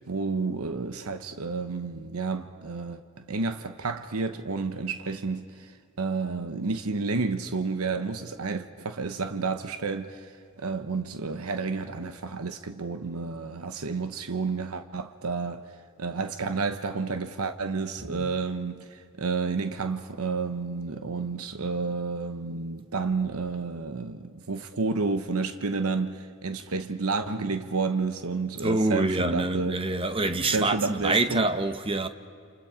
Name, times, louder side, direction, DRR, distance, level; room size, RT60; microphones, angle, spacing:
voice 1, 0.1-15.7 16.0-29.8 30.4-31.5, right 4 dB, 80° right, 0.9 m, -30 dB
voice 2, 28.6-32.1, right 2 dB, 25° right, 1.1 m, -26 dB
28.5 x 28.5 x 5.0 m
head